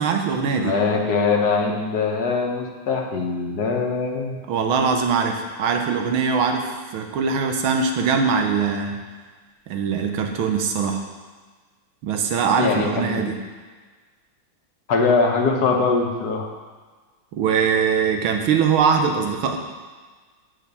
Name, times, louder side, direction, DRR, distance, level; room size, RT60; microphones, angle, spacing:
voice 1, 0.0-0.8 4.5-9.0 9.7-11.0 12.0-13.4 17.3-19.6, right 6 dB, 90° right, 4 dB, 1.7 m, -22 dB
voice 2, 0.5-4.4 12.6-13.3 14.9-16.5, left 4 dB, 55° left, 1 dB, 1.4 m, -22 dB
7.7 x 5.6 x 6.8 m, 1.4 s
omnidirectional pair, 2.2 m